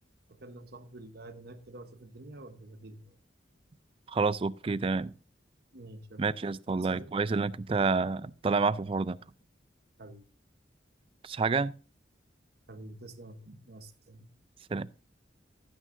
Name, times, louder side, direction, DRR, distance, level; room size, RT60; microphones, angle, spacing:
voice 1, 0.3-3.2 5.7-6.4 6.7-7.1 10.0-10.2 12.7-14.3, right 1 dB, 55° right, 1.0 m, -48 dB
voice 2, 4.1-5.2 6.2-9.2 11.2-11.7 14.7-14.9, right 4 dB, 30° right, 0.4 m, -29 dB
15.0 x 9.2 x 2.6 m
head